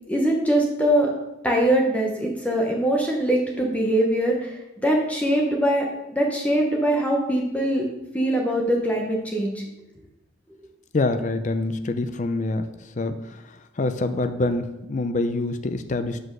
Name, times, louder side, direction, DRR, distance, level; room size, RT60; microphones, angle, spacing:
voice 1, 0.1-1.1 1.4-7.9 8.1-9.6, right 1 dB, 5° left, -1 dB, 0.9 m, -22 dB
voice 2, 10.9-12.6 13.0-13.4 13.8-16.2, left 2 dB, 35° left, 9 dB, 0.5 m, -25 dB
6.0 x 5.2 x 6.2 m, 0.93 s
head